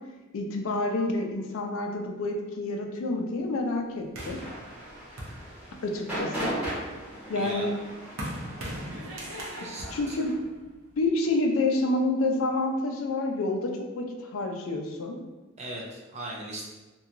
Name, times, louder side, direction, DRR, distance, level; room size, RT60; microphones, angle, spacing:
voice 1, 0.3-4.4 5.8-6.6 7.3-7.7 9.9-10.3 11.0-15.1, left 2 dB, 75° left, 3 dB, 0.4 m, -28 dB
sound 1, 4.1-6.0 6.4-11.1, equal, 75° right, 0.6 m, -40 dB
sound 2, 4.2-10.3, equal, 5° right, 1.1 m, -38 dB
voice 2, 7.3-7.7 9.6-9.9 15.6-16.7, right 1 dB, 30° right, -2 dB, 0.5 m, -38 dB
2.8 x 2.2 x 2.4 m, 1.2 s
head